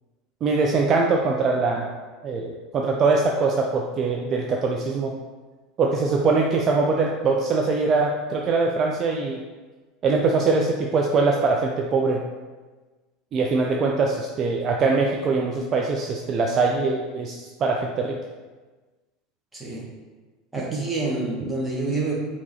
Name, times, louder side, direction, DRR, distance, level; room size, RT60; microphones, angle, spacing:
voice 1, 0.4-1.9 2.2-5.1 5.8-9.4 10.0-12.2 13.3-18.2 20.7-20.8, right 3 dB, 35° right, 0 dB, 0.4 m, -22 dB
voice 2, 19.5-19.8 20.5-22.1, right 2 dB, 10° right, -4 dB, 1.3 m, -27 dB
4.5 x 2.9 x 4.1 m, 1.3 s
figure-of-eight pair, 75°, 0 cm